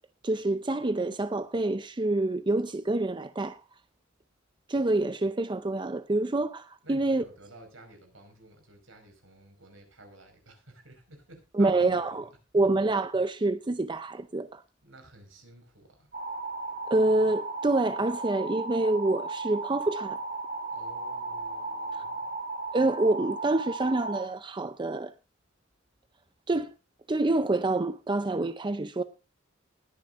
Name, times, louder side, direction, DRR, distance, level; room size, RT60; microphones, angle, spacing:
voice 1, 0.2-3.6 4.7-7.2 11.5-12.3 12.5-14.6 16.9-20.2 21.9-22.0 22.7-25.1 26.5-26.7 27.1-29.0, right 2 dB, 25° right, 0.5 m, -27 dB
voice 2, 6.8-12.4 14.8-16.1 20.7-22.3, right 2 dB, 75° right, 5.1 m, -52 dB
sound 1, 16.1-24.2, right 3 dB, 45° right, 3.6 m, -35 dB
20.0 x 10.0 x 2.5 m
head